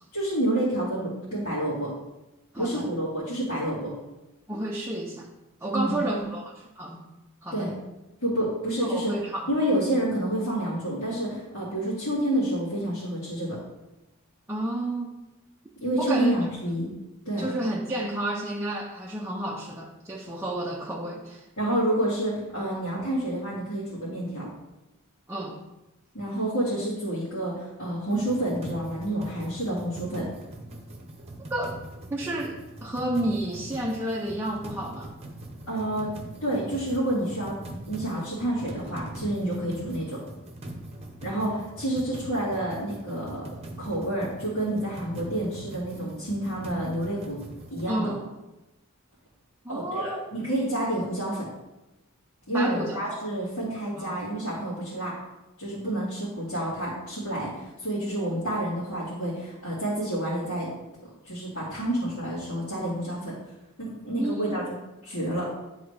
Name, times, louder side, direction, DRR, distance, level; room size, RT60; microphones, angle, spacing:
voice 1, 0.1-1.9 2.6-3.9 5.7-6.3 7.5-7.8 8.2-9.1 9.5-13.6 15.8-16.9 17.2-17.5 21.6-24.5 26.1-30.3 35.7-36.1 36.4-37.5 37.9-40.2 41.2-43.4 43.8-47.4 47.7-48.1 49.7-51.5 52.5-55.1 55.6-60.7 61.2-63.3 63.8-64.6 65.0-65.4, right 1 dB, 65° left, -12 dB, 2.6 m, -29 dB
voice 2, 2.5-2.9 4.5-5.3 5.6-7.1 7.4-7.7 8.8-9.5 14.5-15.2 16.0-16.3 17.4-21.4 25.3-25.6 31.5-31.8 32.1-35.1 47.9-48.3 49.6-50.2 52.5-53.0 53.9-54.1 64.2-64.7, right 1 dB, 10° right, -4 dB, 0.6 m, -31 dB
sound 1, 28.1-47.9, right 1 dB, 30° right, 0.9 m, -42 dB
10.0 x 3.9 x 3.3 m, 1.0 s
head